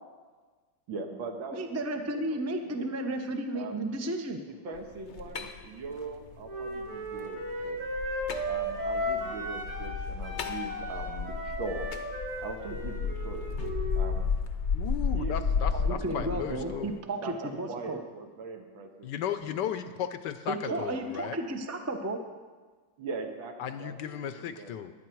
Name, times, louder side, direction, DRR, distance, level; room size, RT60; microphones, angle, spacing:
voice 1, 0.9-1.7 2.1-3.0 3.5-3.9 4.5-7.8 8.5-11.9 12.4-14.3 15.1-15.5 16.1-17.0 17.2-19.5 20.7-20.9 23.0-24.8, right 3 dB, 80° right, 3 dB, 2.2 m, -41 dB
voice 2, 1.5-4.4 15.7-18.0 20.5-22.2, right 1 dB, 20° right, 4 dB, 0.4 m, -33 dB
sound 1, 4.8-16.9, left 5 dB, 55° left, 0.8 m, -33 dB
Wind instrument woodwind instrument, 6.4-10.0 10.2-14.1, equal, 55° right, 3.9 m, -35 dB
voice 3, 14.7-17.0 19.0-21.4 23.6-24.9, left 9 dB, 70° left, 10 dB, 1.2 m, -35 dB
21.5 x 9.2 x 4.6 m, 1.4 s
omnidirectional pair, 2.2 m